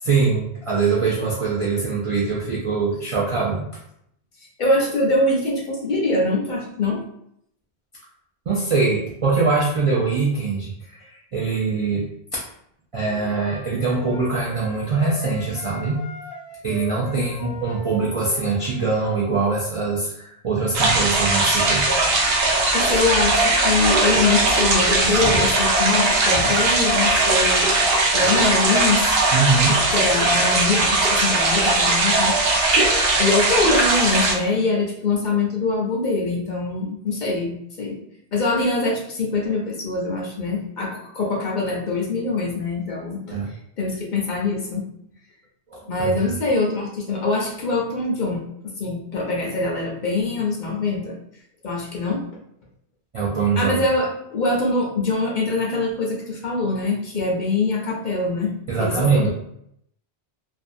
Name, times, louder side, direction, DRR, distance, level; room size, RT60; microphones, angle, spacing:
voice 1, 0.0-3.6 8.5-12.4 12.9-16.0 16.6-21.9 29.3-29.8 43.3-43.5 45.7-46.1 53.1-53.8 58.7-59.3, right 4 dB, 50° right, -6 dB, 0.4 m, -23 dB
voice 2, 4.6-7.0 17.2-17.3 22.7-27.7 28.1-29.1 29.9-32.4 33.2-38.0 38.3-44.8 45.9-51.2 51.6-52.2 53.6-58.5 58.8-59.3, left 3 dB, 55° left, -2 dB, 0.6 m, -23 dB
sound 1, 13.0-18.8, left 3 dB, 85° left, 0.9 m, -38 dB
sound 2, 20.7-34.3, right 2 dB, 70° right, 0.8 m, -19 dB
2.6 x 2.3 x 2.5 m, 0.73 s
omnidirectional pair, 1.1 m